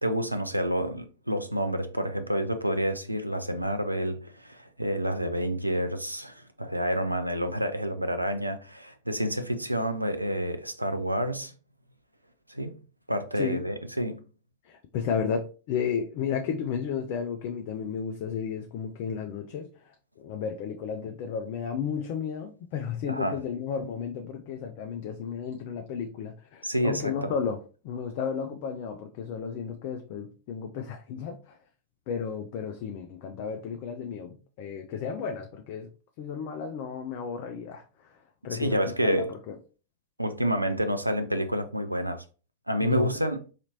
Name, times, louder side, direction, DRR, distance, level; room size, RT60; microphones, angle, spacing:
voice 1, 0.0-11.5 12.5-12.8 13.1-14.2 23.1-23.4 26.6-27.3 38.5-39.3 40.2-42.2 42.7-43.4, equal, 85° right, 0.3 m, -29 dB
voice 2, 14.6-27.6 27.8-31.6 32.1-35.9 36.2-38.2 38.4-39.5 42.8-43.1, left 7 dB, 45° left, 0.4 m, -33 dB
4.1 x 2.9 x 2.7 m
figure-of-eight pair, 90°, 0 cm